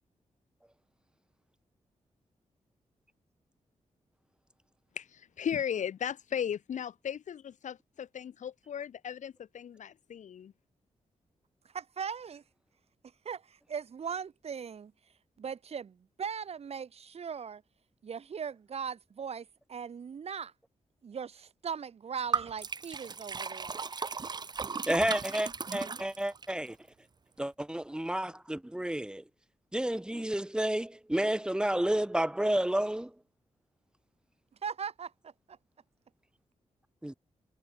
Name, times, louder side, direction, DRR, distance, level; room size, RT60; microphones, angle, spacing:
voice 1, 5.0-10.5, left 8 dB, 80° left, 2.8 m, -36 dB
voice 2, 11.7-12.4 13.3-14.9 15.4-17.6 18.0-20.5 21.0-23.8 34.6-35.3, right 7 dB, 55° right, 3.7 m, -39 dB
Liquid, 22.3-26.5, right 4 dB, 35° right, 1.7 m, -36 dB
voice 3, 24.9-26.8 27.4-29.2 29.7-33.1 37.0-37.1, right 1 dB, 5° right, 1.7 m, -30 dB
wide cardioid pair, 150°, 12 cm